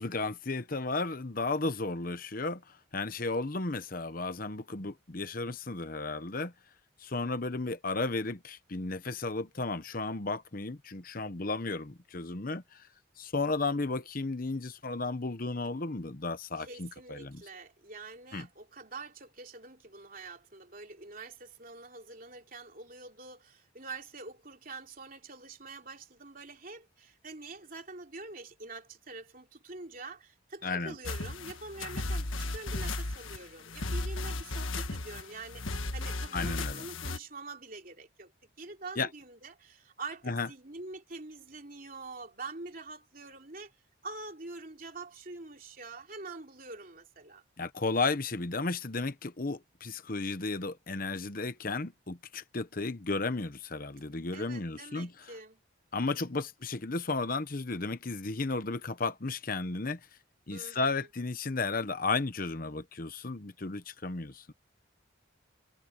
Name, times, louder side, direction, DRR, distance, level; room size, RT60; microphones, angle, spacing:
voice 1, 0.0-6.5 7.0-12.9 13.2-17.4 18.3-18.5 30.6-30.9 36.3-36.8 39.0-39.1 40.3-40.5 47.6-55.1 55.9-60.0 60.5-64.5, left 3 dB, 45° left, 1.0 m, -34 dB
voice 2, 16.6-38.3 38.6-43.7 44.0-47.4 54.3-55.6 56.1-56.4 60.5-61.1, right 3 dB, 45° right, 3.2 m, -45 dB
sound 1, 31.0-37.2, left 2 dB, 75° left, 1.5 m, -35 dB
head